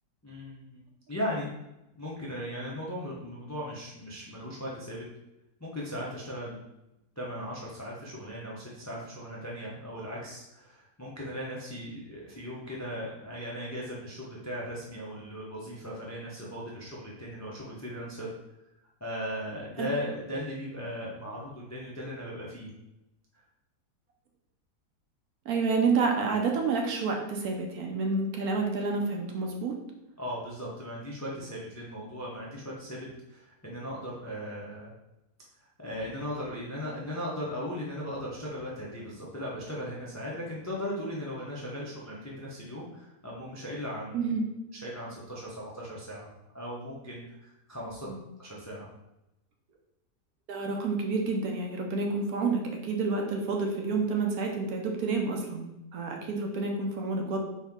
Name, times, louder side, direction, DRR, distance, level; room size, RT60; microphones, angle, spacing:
voice 1, 0.2-0.8 1.1-1.5 1.9-5.0 5.6-6.6 7.2-18.3 19.0-22.7 30.2-34.9 35.8-44.3 44.7-46.3 46.5-48.1 48.4-48.9, equal, 30° left, -5 dB, 0.3 m, -37 dB
voice 2, 25.5-29.8 44.1-44.5 48.1-48.2 50.5-57.4, right 4 dB, 65° right, 2 dB, 1.1 m, -29 dB
4.3 x 2.9 x 3.6 m, 0.92 s
omnidirectional pair, 1.8 m